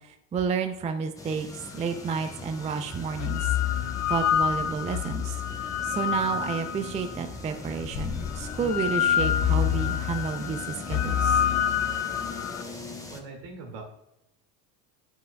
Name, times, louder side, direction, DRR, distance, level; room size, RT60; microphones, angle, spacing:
voice 1, 0.3-1.5 1.7-3.5 4.1-5.4 5.8-11.4, right 5 dB, 15° right, 7 dB, 0.4 m, -30 dB
sound 1, 1.2-13.2, left 2 dB, 5° left, 0.9 m, -41 dB
sound 2, 1.9-2.0 2.9-7.2 7.9-12.6, left 9 dB, 35° left, 0.6 m, -27 dB
voice 2, 13.1-13.8, right 3 dB, 65° right, 3 dB, 2.1 m, -41 dB
7.7 x 5.8 x 2.2 m, 0.86 s
supercardioid pair, 90°, 49 cm